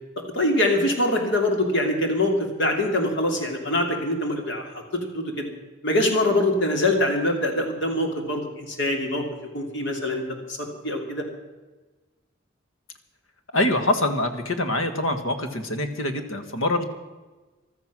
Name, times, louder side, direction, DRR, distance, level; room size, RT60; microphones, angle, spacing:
voice 1, 0.3-5.5 5.8-9.3 9.5-10.2 10.5-11.3, left 1 dB, 60° left, 3 dB, 2.8 m, -24 dB
voice 2, 13.5-16.8, left 1 dB, 90° left, 8 dB, 1.7 m, -24 dB
15.0 x 13.0 x 6.2 m, 1.2 s
head